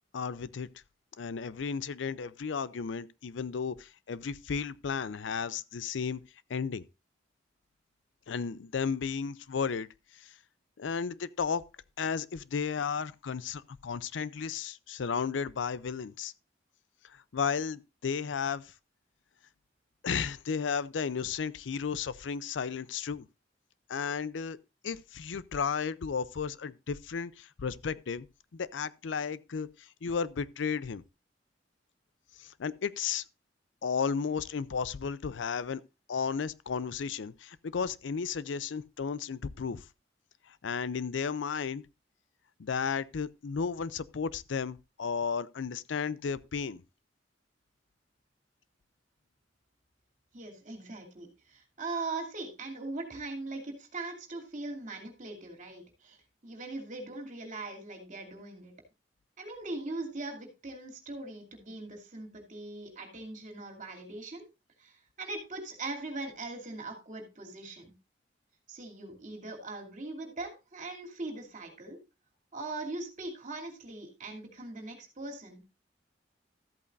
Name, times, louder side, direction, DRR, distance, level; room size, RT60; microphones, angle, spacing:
voice 1, 0.1-0.7 1.2-6.2 6.5-6.8 8.3-9.9 10.8-11.6 12.0-16.3 17.3-18.6 20.0-23.3 23.9-24.6 24.8-28.3 28.5-29.7 30.0-31.0 32.4-33.2 33.8-35.8 36.1-39.8 40.6-41.8 42.6-46.8, left 6 dB, 80° left, 0.5 m, -33 dB
voice 2, 50.3-58.7 59.4-64.4 64.8-67.9 68.7-72.0 72.5-75.6, right 2 dB, 40° right, 2.8 m, -40 dB
13.5 x 8.4 x 2.6 m
head